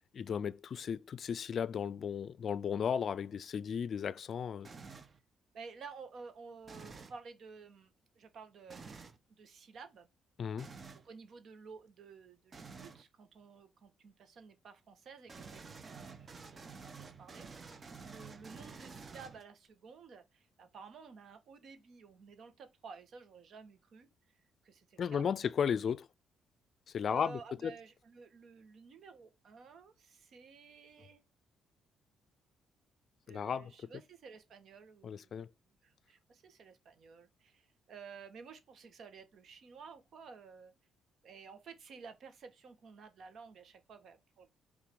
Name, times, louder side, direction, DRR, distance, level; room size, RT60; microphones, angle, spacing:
voice 1, 0.1-4.7 10.4-10.7 25.0-26.1 26.9-27.7 33.3-33.7 35.0-35.5, left 7 dB, 55° left, 0.4 m, -35 dB
sound 1, 4.6-5.2 6.6-7.2 8.7-9.2 10.6-11.1 12.5-13.0 15.3-19.7, right 4 dB, 35° right, 1.1 m, -50 dB
voice 2, 5.5-10.1 10.9-25.2 27.1-31.2 33.3-35.5 35.8-40.7 41.2-44.5, right 5 dB, 65° right, 1.8 m, -53 dB
5.8 x 4.0 x 4.7 m
cardioid pair, 90°, 0 cm